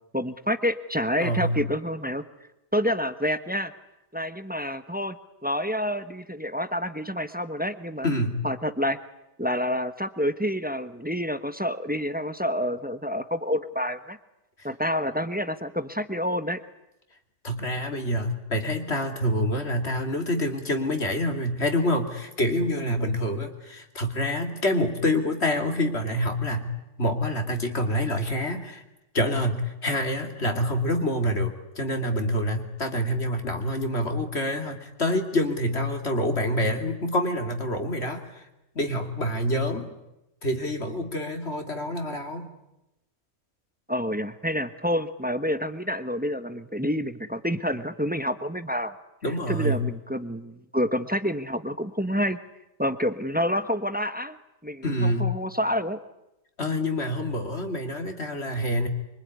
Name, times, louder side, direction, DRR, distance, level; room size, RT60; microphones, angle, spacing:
voice 1, 0.1-2.2 2.7-3.7 4.1-5.2 5.4-8.1 8.4-9.0 9.4-14.2 14.6-16.6 43.9-48.9 49.3-52.4 52.8-54.4 54.6-56.0, equal, 5° right, 11 dB, 1.1 m, -28 dB
voice 2, 1.2-1.6 8.0-8.4 17.4-26.7 27.0-28.8 29.1-38.4 38.7-39.9 40.4-42.5 49.2-49.8 54.8-55.2 56.6-58.9, equal, 50° left, 5 dB, 3.0 m, -27 dB
25.5 x 24.0 x 9.6 m, 0.90 s
omnidirectional pair, 1.5 m